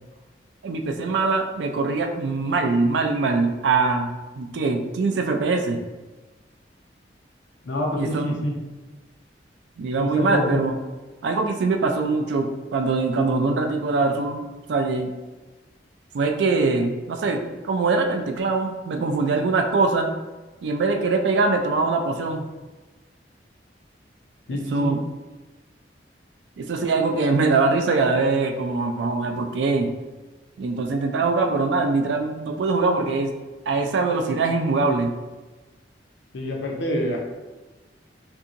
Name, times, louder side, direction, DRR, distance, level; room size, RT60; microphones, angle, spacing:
voice 1, 0.6-5.8 7.9-8.4 9.8-10.8 11.2-15.1 16.1-20.1 20.6-22.5 24.5-25.0 26.6-29.9 30.6-33.3 33.7-35.1, right 3 dB, 75° right, 5 dB, 0.3 m, -23 dB
voice 2, 7.6-8.5 10.0-10.6 24.5-24.9 36.3-37.2, equal, 80° left, 0 dB, 0.5 m, -26 dB
2.7 x 2.7 x 2.5 m, 1.2 s
head